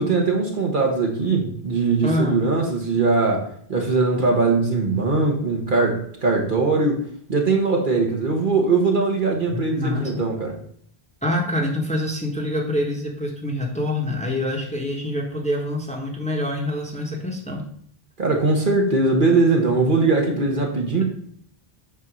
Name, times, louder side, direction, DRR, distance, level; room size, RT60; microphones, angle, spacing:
voice 1, 0.0-7.0 7.3-10.6 18.2-21.0, right 3 dB, 55° right, 1 dB, 1.3 m, -21 dB
voice 2, 2.0-2.4 9.5-10.1 11.2-17.6, left 1 dB, 5° left, 0 dB, 1.1 m, -26 dB
8.2 x 2.7 x 6.1 m, 0.63 s
omnidirectional pair, 1.0 m